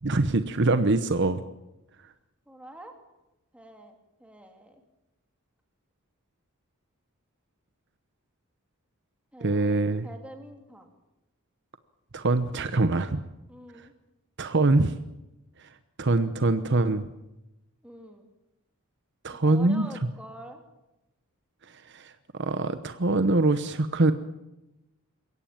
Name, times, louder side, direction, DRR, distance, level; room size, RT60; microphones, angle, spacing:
voice 1, 0.0-1.4 9.4-10.1 12.1-13.2 14.4-14.9 16.0-17.0 19.2-19.9 21.9-22.1 22.4-24.1, right 2 dB, 55° right, 11 dB, 1.0 m, -23 dB
voice 2, 2.5-2.9 3.5-4.8 9.3-10.9 13.5-13.9 17.8-18.3 19.4-20.6, right 1 dB, 5° right, 3 dB, 3.1 m, -46 dB
22.5 x 17.0 x 8.8 m, 0.95 s
head